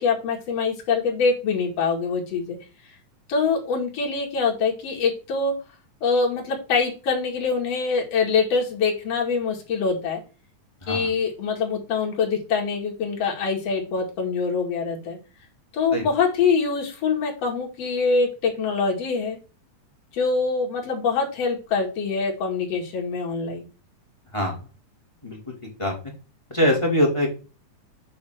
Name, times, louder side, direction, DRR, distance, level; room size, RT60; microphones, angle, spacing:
voice 1, 0.0-2.6 3.3-5.5 6.0-10.2 10.9-15.2 15.7-19.4 20.1-23.7, left 5 dB, 50° left, -2 dB, 3.2 m, -24 dB
voice 2, 24.3-24.7 25.2-25.4 25.8-25.9 26.5-27.3, equal, 10° left, 0 dB, 1.6 m, -23 dB
8.6 x 3.3 x 6.5 m, 0.33 s
omnidirectional pair, 3.8 m